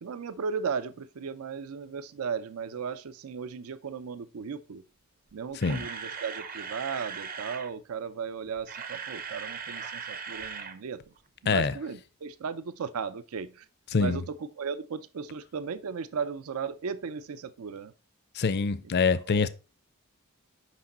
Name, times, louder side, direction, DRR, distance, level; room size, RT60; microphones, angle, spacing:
voice 1, 0.0-4.8 5.3-11.0 11.4-13.7 13.9-17.9 19.1-19.5, right 6 dB, 80° right, 0.5 m, -36 dB
Camera, 5.3-7.7 8.5-10.8 11.0-11.2 11.6-11.7, right 6 dB, 40° right, 0.7 m, -39 dB
voice 2, 18.4-19.5, left 5 dB, 50° left, 0.5 m, -25 dB
6.1 x 5.2 x 4.2 m
head